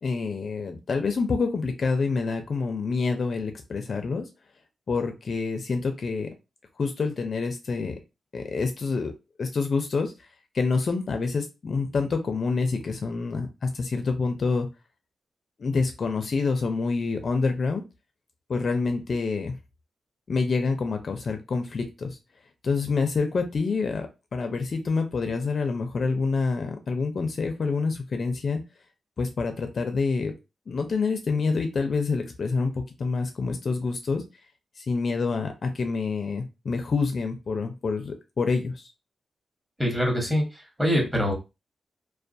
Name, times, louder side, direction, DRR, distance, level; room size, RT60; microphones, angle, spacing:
voice 1, 0.0-4.3 4.9-6.3 6.8-7.9 8.3-9.1 9.4-10.1 10.5-14.7 15.6-17.8 18.5-19.5 20.3-22.2 22.6-28.6 29.2-30.3 30.7-34.2 34.8-38.8, left 4 dB, 55° left, 6 dB, 0.4 m, -27 dB
voice 2, 39.8-40.4 40.8-41.3, equal, 10° right, 0 dB, 1.0 m, -23 dB
2.2 x 2.2 x 2.5 m, 0.27 s
wide cardioid pair, 105°, 0 cm